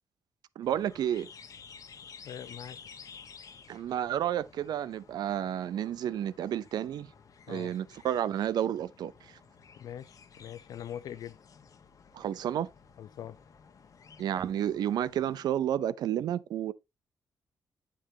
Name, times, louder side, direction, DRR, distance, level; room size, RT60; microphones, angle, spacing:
sound 1, 0.6-15.5, left 6 dB, 55° left, 1.2 m, -53 dB
voice 1, 0.6-1.3 3.7-7.1 7.5-9.3 12.1-12.7 14.2-16.7, right 10 dB, 80° right, 0.6 m, -31 dB
voice 2, 2.2-2.8 7.5-7.7 9.8-11.4 13.0-13.4, left 10 dB, 80° left, 0.7 m, -42 dB
8.4 x 7.7 x 2.8 m
cardioid pair, 80°, 7 cm